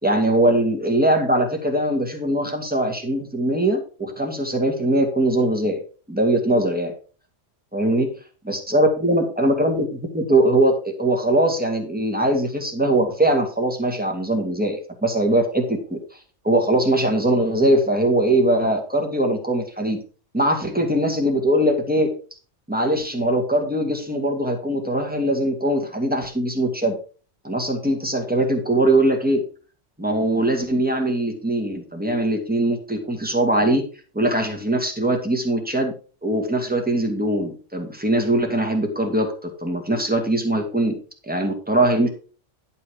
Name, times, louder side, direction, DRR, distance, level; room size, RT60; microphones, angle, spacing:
voice 1, 0.0-5.8 6.1-6.9 7.7-8.1 8.5-16.0 16.4-20.0 20.3-22.1 22.7-27.0 27.4-29.4 30.0-33.8 34.1-35.9 36.2-41.0 41.2-42.1, right 1 dB, 5° right, 3 dB, 2.1 m, -21 dB
11.0 x 5.7 x 4.9 m, 0.37 s
omnidirectional pair, 1.3 m